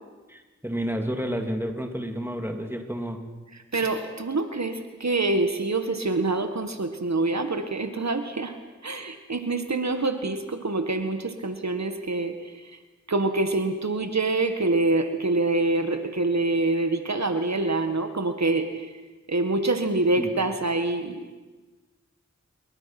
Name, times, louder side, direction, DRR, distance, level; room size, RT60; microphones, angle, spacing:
voice 1, 0.3-3.2 20.2-20.3, equal, 10° right, 4 dB, 2.9 m, -30 dB
voice 2, 3.7-8.5 8.8-12.8 13.1-18.9 19.3-21.4, right 2 dB, 70° right, 7 dB, 1.7 m, -26 dB
28.0 x 23.0 x 6.1 m, 1.3 s
wide cardioid pair, 50°, 29 cm